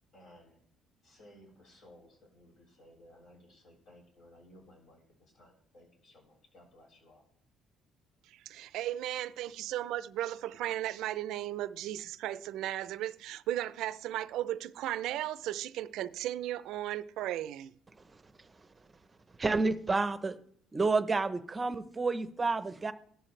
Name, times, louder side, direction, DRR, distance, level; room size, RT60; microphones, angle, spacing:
voice 1, 0.1-0.6 1.0-7.2, left 1 dB, 60° left, 7.0 m, -58 dB
voice 2, 8.6-17.8, right 13 dB, 80° right, 0.5 m, -35 dB
voice 3, 19.4-20.3 20.7-22.9, right 3 dB, 20° right, 0.8 m, -29 dB
15.5 x 12.5 x 3.3 m
cardioid pair, 115°, 0 cm